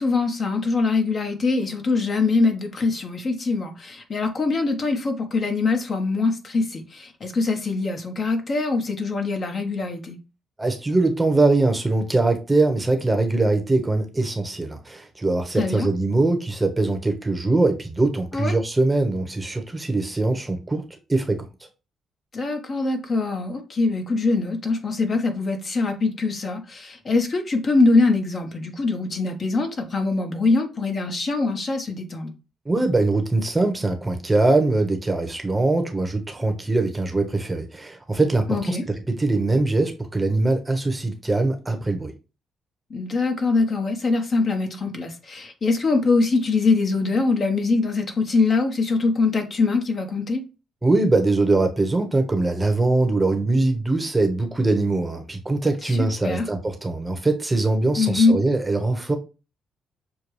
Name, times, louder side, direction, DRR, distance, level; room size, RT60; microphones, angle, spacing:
voice 1, 0.0-10.2 15.6-15.9 18.3-18.5 22.3-32.3 38.5-38.8 42.9-50.4 55.8-56.5 58.0-58.3, left 3 dB, 40° left, 1.0 m, -23 dB
voice 2, 10.6-20.8 21.1-21.4 32.6-38.8 39.1-42.1 50.8-59.2, right 2 dB, 15° right, 0.9 m, -22 dB
6.6 x 2.2 x 3.1 m
cardioid pair, 90°, 0 cm